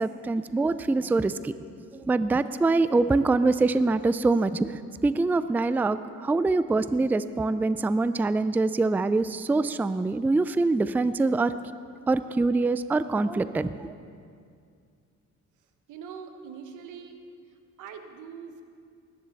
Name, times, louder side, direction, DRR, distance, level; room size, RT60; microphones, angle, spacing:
voice 1, 0.0-1.5 1.9-11.5 12.1-13.9, right 3 dB, 5° right, 13 dB, 0.3 m, -24 dB
voice 2, 15.9-17.2 17.8-18.6, right 6 dB, 90° right, 6 dB, 1.2 m, -42 dB
20.0 x 10.5 x 4.1 m, 2.3 s
cardioid pair, 90°, 30 cm